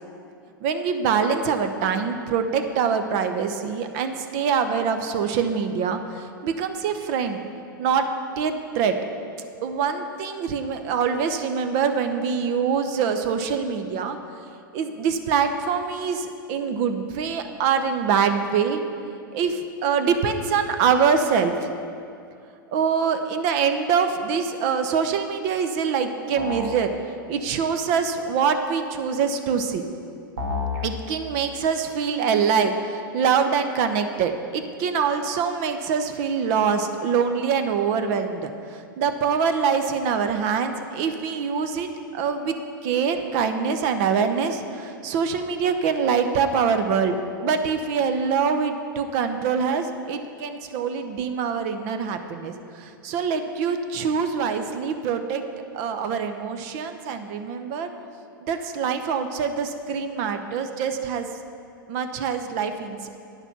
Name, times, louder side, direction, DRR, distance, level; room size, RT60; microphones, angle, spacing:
voice 1, 0.6-7.4 7.8-8.1 8.4-9.0 9.6-14.2 14.7-18.8 19.3-21.7 22.7-26.9 27.3-29.8 30.8-42.6 42.8-47.2 47.4-55.4 55.7-57.9 58.4-61.3 61.9-63.1, right 6 dB, 45° right, 7 dB, 0.7 m, -24 dB
sound 1, 26.4-26.8 30.4-30.8, left 3 dB, 60° right, 1.6 m, -29 dB
9.7 x 6.7 x 6.0 m, 2.5 s
figure-of-eight pair, 95°, 12 cm